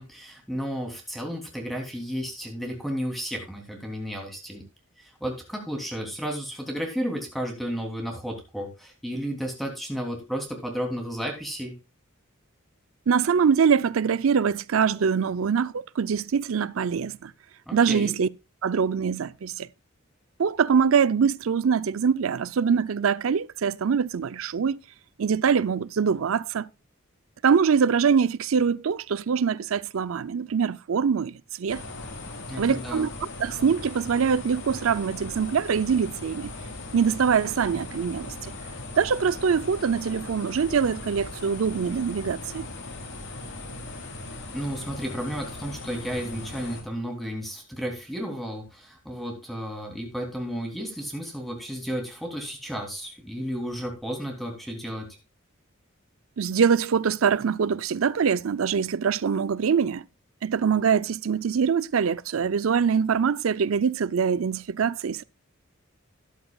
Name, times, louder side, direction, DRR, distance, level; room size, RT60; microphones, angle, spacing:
voice 1, 0.0-4.6 5.0-11.7 17.7-18.1 32.5-33.1 44.5-55.0, equal, ahead, 3.0 m, -33 dB
voice 2, 13.1-17.3 17.7-18.3 18.6-19.7 20.4-24.8 25.2-26.7 27.4-31.8 32.6-33.1 33.4-36.5 36.9-38.3 39.0-42.7 56.4-60.0 60.4-65.2, right 6 dB, 80° right, 0.5 m, -23 dB
sound 1, 31.7-46.8, left 2 dB, 60° left, 2.8 m, -39 dB
13.0 x 11.0 x 2.3 m
head